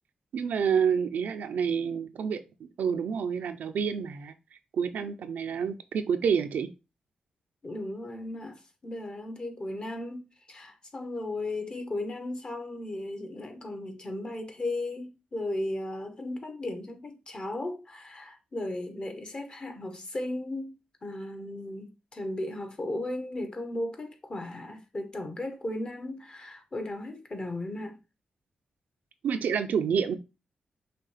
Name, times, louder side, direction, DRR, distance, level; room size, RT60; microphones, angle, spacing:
voice 1, 0.3-4.3 4.7-6.7 29.2-30.1, right 7 dB, 85° right, 0.5 m, -28 dB
voice 2, 7.6-20.7 21.0-28.0, left 1 dB, 35° left, 1.1 m, -36 dB
5.7 x 2.3 x 3.3 m
cardioid pair, 80°, 3 cm